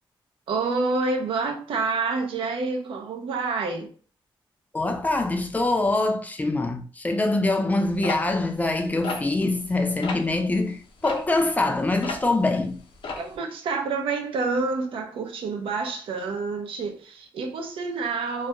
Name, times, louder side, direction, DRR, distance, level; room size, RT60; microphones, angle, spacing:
voice 1, 0.5-3.9 13.1-18.5, right 4 dB, 90° right, 0.5 m, -28 dB
voice 2, 4.7-12.8, left 2 dB, 20° left, 0.3 m, -24 dB
sound 1, 8.0-9.7 10.0-10.3 11.0-12.4 12.7-13.3, left 3 dB, 75° left, 0.5 m, -33 dB
2.3 x 2.1 x 2.8 m
wide cardioid pair, 120°, 9 cm